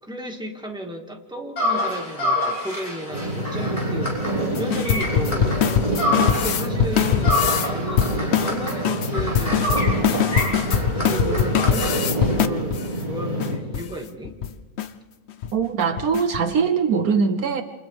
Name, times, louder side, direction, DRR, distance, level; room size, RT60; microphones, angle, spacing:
voice 1, 0.0-6.0 6.3-10.6 11.0-14.4, equal, 5° right, 1 dB, 2.0 m, -34 dB
sound 1, 1.6-6.6 6.9-12.4, left 1 dB, 25° left, 6.3 m, -28 dB
sound 2, 3.1-13.6, right 1 dB, 20° right, 4.7 m, -27 dB
sound 3, 4.5-7.7 8.0-12.9 13.4-13.5 13.7-13.9 14.3-14.5 14.8-14.9 15.3-15.5 16.0-16.4, left 8 dB, 55° left, 0.9 m, -23 dB
voice 2, 15.5-17.6, right 6 dB, 65° right, 8 dB, 1.3 m, -21 dB
28.5 x 27.5 x 3.5 m, 1.2 s
omnidirectional pair, 1.7 m